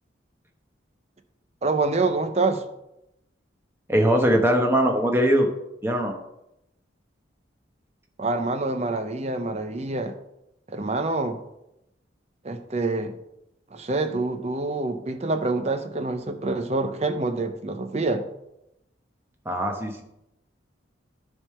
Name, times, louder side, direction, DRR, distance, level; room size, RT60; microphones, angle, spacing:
voice 1, 1.6-2.6 8.2-10.1 10.7-11.4 12.4-13.1 13.7-18.3, right 3 dB, 35° right, 8 dB, 0.7 m, -26 dB
voice 2, 3.9-5.5 5.8-6.1 19.4-20.0, equal, 10° right, 2 dB, 1.0 m, -21 dB
10.5 x 3.6 x 5.6 m, 0.85 s
head